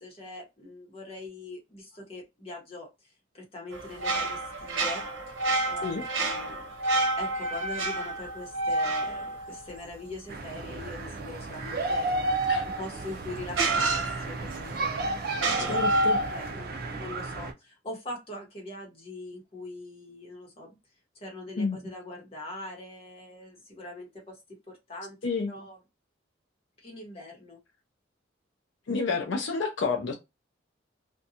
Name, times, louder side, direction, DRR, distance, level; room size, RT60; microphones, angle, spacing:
voice 1, 0.0-5.0 5.7-5.9 6.2-6.7 7.2-12.2 12.8-15.3 15.6-15.8 16.3-20.8 21.1-25.2 25.5-25.8 26.8-27.6, left 2 dB, 30° left, 0.9 m, -42 dB
sound 1, 3.7-10.3 12.6-12.7 13.5-14.7 15.3-16.5, right 3 dB, 85° right, 0.7 m, -30 dB
sound 2, 10.3-17.5, right 1 dB, 50° right, 0.4 m, -30 dB
voice 2, 15.7-16.2 21.6-21.8 25.2-25.5 28.9-30.1, left 4 dB, 70° left, 0.4 m, -29 dB
2.5 x 2.2 x 2.7 m
head